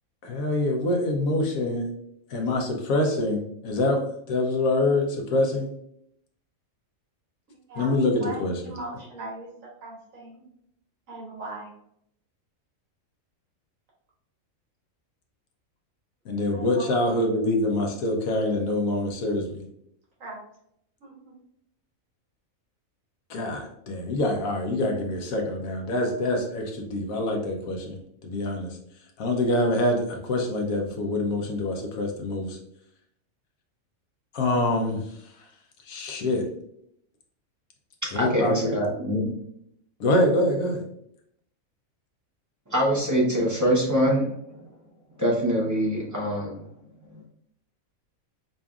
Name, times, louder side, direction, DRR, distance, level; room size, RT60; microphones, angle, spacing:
voice 1, 0.2-1.9 2.3-5.7 7.8-8.6 16.2-19.7 23.3-28.8 29.2-32.6 34.3-35.5 35.8-36.5 38.1-38.7 40.0-40.8, left 1 dB, 75° left, 2 dB, 1.1 m, -25 dB
voice 2, 7.7-9.5 9.8-10.4 11.1-11.7 16.5-16.9 20.2-20.4 21.0-21.3, right 2 dB, 70° right, -4 dB, 1.5 m, -39 dB
voice 3, 38.0-39.3 42.7-44.3 45.2-46.6, equal, 15° right, -4 dB, 0.7 m, -24 dB
5.1 x 2.6 x 2.3 m, 0.72 s
omnidirectional pair, 1.5 m